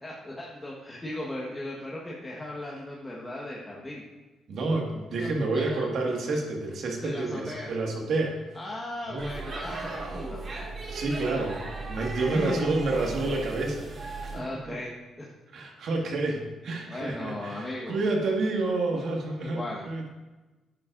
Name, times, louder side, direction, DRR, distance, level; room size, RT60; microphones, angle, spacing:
voice 1, 0.0-4.0 5.2-5.9 7.0-7.7 8.5-10.5 12.2-12.7 14.3-15.3 16.9-18.0 19.4-19.8, left 1 dB, 15° left, -4 dB, 1.4 m, -37 dB
voice 2, 4.5-8.4 9.1-9.3 10.9-11.6 11.9-14.7 15.5-20.1, right 2 dB, 65° right, 0 dB, 1.9 m, -29 dB
Speech / Shout / Subway metro underground, 9.2-14.4, right 3 dB, 45° right, 2.1 m, -36 dB
11.0 x 9.6 x 2.6 m, 1.2 s
cardioid pair, 90°, 0 cm